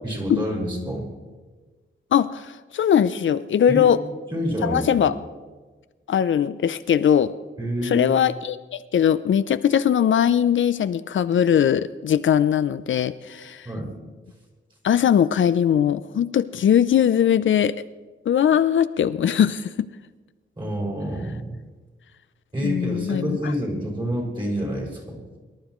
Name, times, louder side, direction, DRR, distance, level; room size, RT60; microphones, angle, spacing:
voice 1, 0.0-1.1 3.7-3.9 4.3-5.1 7.6-8.2 13.6-13.9 20.6-21.6 22.5-25.2, equal, 25° right, -2 dB, 5.3 m, -28 dB
voice 2, 2.1-4.0 4.6-5.1 6.1-7.3 7.8-13.7 14.8-17.8 18.3-19.9 22.6-23.5, left 9 dB, 70° left, 13 dB, 0.5 m, -20 dB
23.5 x 12.0 x 3.1 m, 1.3 s
wide cardioid pair, 115°, 20 cm